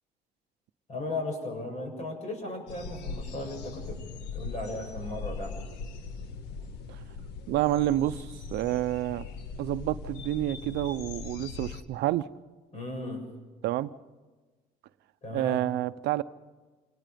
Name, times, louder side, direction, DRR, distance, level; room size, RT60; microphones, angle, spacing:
voice 1, 0.9-4.0 4.3-5.6 12.7-13.2 15.2-15.6, left 2 dB, 40° left, 3 dB, 7.2 m, -36 dB
sound 1, 2.7-11.8, left 4 dB, 90° left, 1.5 m, -40 dB
voice 2, 7.5-9.2 9.6-12.3 13.6-13.9 15.3-16.2, right 14 dB, 80° right, 13 dB, 0.7 m, -28 dB
28.0 x 19.0 x 5.2 m, 1.3 s
cardioid pair, 110°, 17 cm